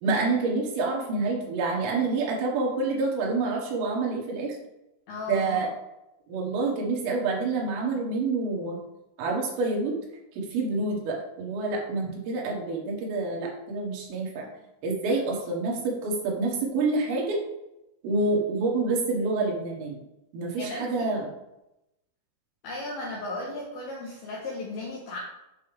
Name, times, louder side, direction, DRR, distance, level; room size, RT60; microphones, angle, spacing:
voice 1, 0.0-4.6 5.3-5.7 6.3-8.8 9.2-10.0 10.3-14.5 14.8-17.4 18.0-20.0 20.3-21.3, right 3 dB, 80° right, -1 dB, 4.2 m, -27 dB
voice 2, 5.1-5.7 20.6-21.1 22.6-25.2, left 2 dB, 75° left, -3 dB, 2.3 m, -35 dB
9.2 x 6.1 x 3.5 m, 0.91 s
omnidirectional pair, 5.9 m